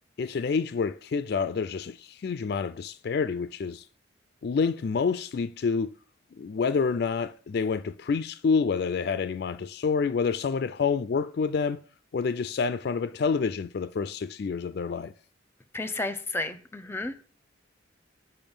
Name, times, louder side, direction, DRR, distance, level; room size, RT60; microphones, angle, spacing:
voice 1, 0.2-3.8 4.4-5.9 6.4-11.8 12.1-15.1, left 5 dB, 50° left, 0.3 m, -28 dB
voice 2, 15.7-17.3, left 2 dB, 10° left, 0.6 m, -32 dB
8.9 x 5.6 x 5.4 m
head